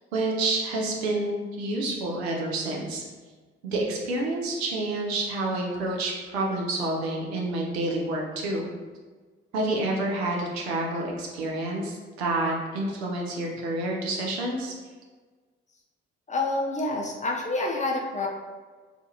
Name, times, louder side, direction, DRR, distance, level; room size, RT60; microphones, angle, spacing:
voice 1, 0.1-3.0 3.6-8.7 9.5-14.7, right 2 dB, 85° right, -2 dB, 0.5 m, -28 dB
voice 2, 16.3-18.3, left 2 dB, 25° left, -1 dB, 0.6 m, -28 dB
2.4 x 2.3 x 2.7 m, 1.4 s
hypercardioid pair, 40°, 31 cm